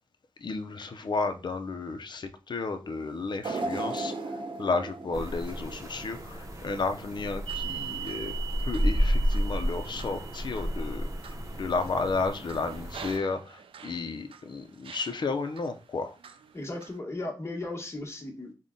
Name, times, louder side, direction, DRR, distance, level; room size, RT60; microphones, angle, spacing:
voice 1, 0.4-4.1 4.6-8.3 8.6-16.2, left 4 dB, 55° left, 7 dB, 0.6 m, -32 dB
sound 1, 3.4-6.6 7.0-7.2 8.2-8.3, right 2 dB, 65° right, 0.8 m, -36 dB
sound 2, 5.1-13.2, equal, 35° right, 0.8 m, -31 dB
sound 3, 7.5-14.4 14.8-15.7 16.2-17.0, right 10 dB, 80° right, 0.4 m, -43 dB
voice 2, 16.5-18.5, left 2 dB, 30° left, 1 dB, 1.1 m, -36 dB
3.7 x 2.2 x 3.7 m, 0.34 s
cardioid pair, 50°, 9 cm